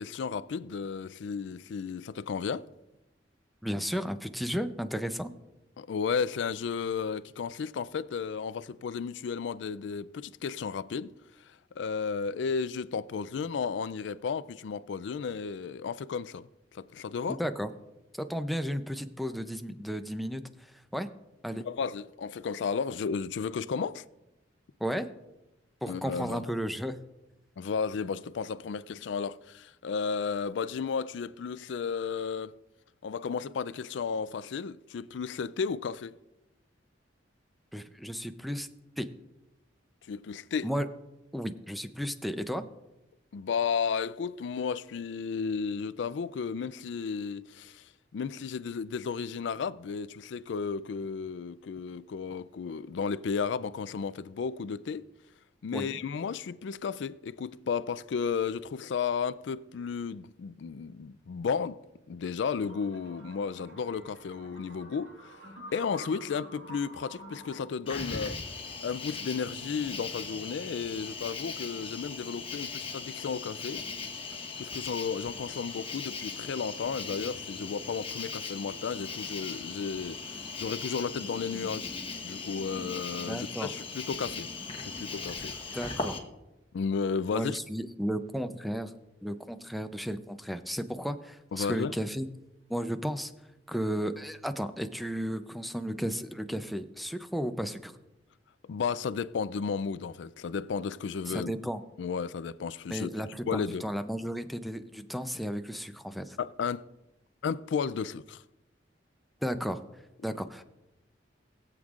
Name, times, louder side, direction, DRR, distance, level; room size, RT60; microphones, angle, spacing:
voice 1, 0.0-2.7 5.8-11.1 11.5-16.5 16.7-17.4 21.5-24.0 25.9-26.5 27.6-32.6 33.0-36.1 40.1-40.7 43.3-55.1 55.6-61.8 62.1-65.3 65.7-68.4 68.8-73.8 74.6-81.9 82.2-84.5 84.9-85.6 86.7-87.6 91.5-91.9 98.7-101.5 102.0-103.1 103.5-103.8 106.4-106.9 107.4-108.4, left 6 dB, 75° left, 0.4 m, -33 dB
voice 2, 3.6-5.3 17.3-17.7 18.2-21.1 21.4-21.6 24.8-25.1 25.8-27.0 37.7-38.7 39.0-39.1 40.6-40.9 41.3-42.6 55.7-56.0 83.2-83.7 85.7-86.2 87.3-88.9 89.2-92.3 92.7-93.3 93.7-97.9 101.3-101.8 102.9-106.4 109.4-109.8 110.2-110.6, equal, ahead, 0.5 m, -34 dB
sound 1, 62.6-67.7, equal, 90° right, 2.6 m, -48 dB
Cricket, 67.9-86.2, left 4 dB, 30° left, 1.2 m, -39 dB
20.5 x 7.9 x 2.4 m
head